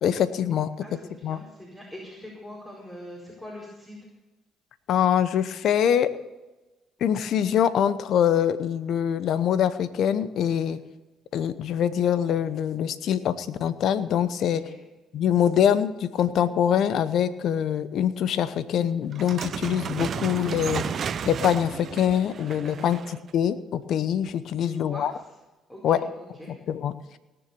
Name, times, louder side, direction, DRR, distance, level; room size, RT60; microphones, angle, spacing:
voice 1, 0.0-0.7 1.2-1.4 4.9-6.1 7.0-10.8 11.3-14.6 15.1-23.0 23.3-25.1 25.8-26.1 26.7-26.9, left 9 dB, 65° left, 14 dB, 0.9 m, -24 dB
voice 2, 0.8-4.0 10.6-10.8 14.4-14.8 22.6-23.0 24.6-25.4 25.7-26.5, left 1 dB, 15° left, -4 dB, 4.8 m, -43 dB
sound 1, 19.1-23.3, right 7 dB, 55° right, 0.7 m, -33 dB
18.5 x 7.1 x 6.9 m, 1.1 s
supercardioid pair, 70°, 0 cm